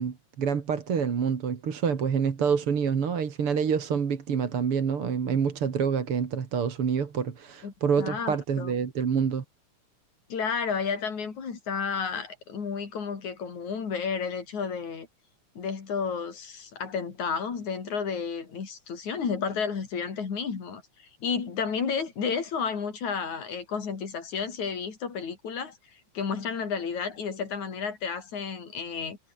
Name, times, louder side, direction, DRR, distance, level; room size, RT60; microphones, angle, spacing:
voice 1, 0.0-9.4, right 6 dB, 50° right, 3.0 m, -27 dB
voice 2, 7.6-8.7 10.3-15.1 15.5-29.2, left 6 dB, 75° left, 5.1 m, -32 dB
omnidirectional pair, 3.3 m